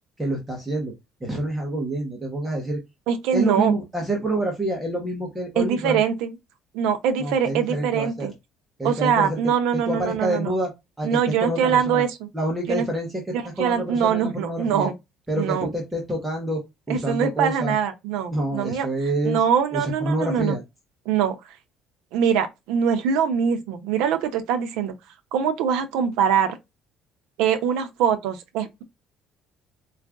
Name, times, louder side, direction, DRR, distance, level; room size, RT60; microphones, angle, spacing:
voice 1, 0.2-0.9 1.2-2.8 3.3-6.0 7.2-8.3 8.8-9.4 9.7-10.7 11.0-12.0 12.3-13.1 13.6-14.9 15.3-16.6 16.9-17.7 18.3-19.4 19.7-20.6, right 1 dB, 10° right, 0.8 m, -27 dB
voice 2, 3.1-3.7 5.6-6.3 6.7-8.3 8.8-10.5 11.0-12.3 12.7-12.8 13.3-14.9 15.4-15.7 16.9-18.9 19.2-20.6 21.1-21.4 22.1-24.9 25.3-26.6 27.4-28.8, right 7 dB, 90° right, 0.6 m, -23 dB
4.6 x 2.4 x 2.3 m
cardioid pair, 165°, 0 cm